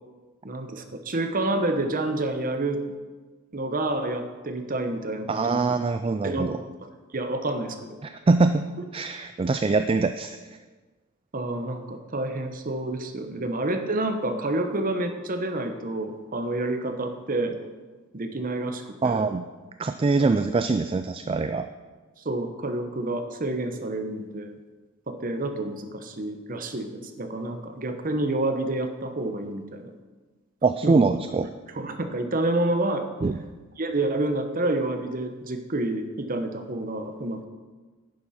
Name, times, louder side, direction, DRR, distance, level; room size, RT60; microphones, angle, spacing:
voice 1, 0.4-2.8 3.5-5.6 6.2-6.5 6.8-7.8 11.3-17.6 18.1-19.2 22.2-24.5 25.1-29.9 30.8-31.0 31.7-33.1 33.8-37.4, right 2 dB, 40° right, 7 dB, 1.0 m, -28 dB
voice 2, 5.3-6.6 8.0-8.6 8.9-10.4 19.0-19.5 19.8-21.7 30.6-31.5 33.2-33.4, right 3 dB, 25° right, 9 dB, 0.3 m, -23 dB
11.5 x 9.5 x 4.3 m, 1.3 s
head